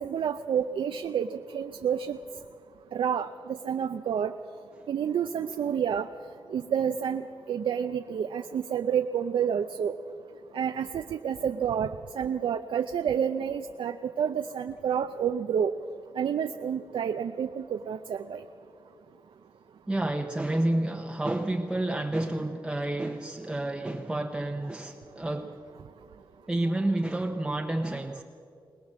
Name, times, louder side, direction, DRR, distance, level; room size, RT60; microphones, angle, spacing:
voice 1, 0.0-2.2 2.9-4.3 4.9-6.1 6.5-9.9 10.5-15.7 16.2-18.4, right 8 dB, 90° right, 7 dB, 0.6 m, -29 dB
voice 2, 19.9-25.6 26.5-28.2, right 1 dB, 10° right, 3 dB, 0.8 m, -29 dB
22.0 x 20.0 x 7.5 m, 2.5 s
wide cardioid pair, 175°, 8 cm